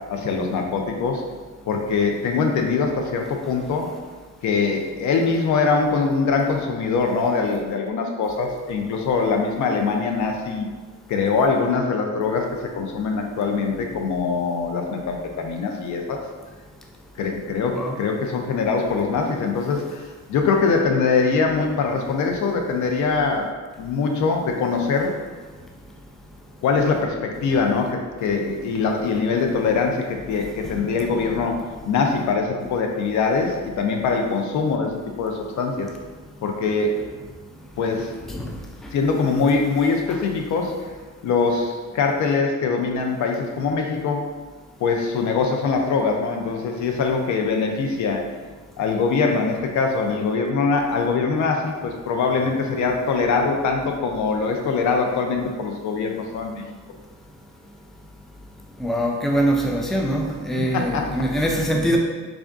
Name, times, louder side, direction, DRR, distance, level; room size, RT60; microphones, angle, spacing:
voice 1, 0.1-1.2 1.7-3.9 4.4-10.7 11.1-16.2 17.2-20.0 20.3-23.5 23.8-25.2 26.6-34.9 35.2-35.9 36.4-36.9 37.8-38.1 38.9-40.7 41.2-44.3 44.8-48.2 48.8-56.6 60.5-61.1, left 4 dB, 70° left, 3 dB, 0.6 m, -23 dB
voice 2, 58.8-62.0, right 1 dB, ahead, 0 dB, 0.4 m, -23 dB
3.5 x 2.5 x 3.5 m, 1.4 s
cardioid pair, 90°, 30 cm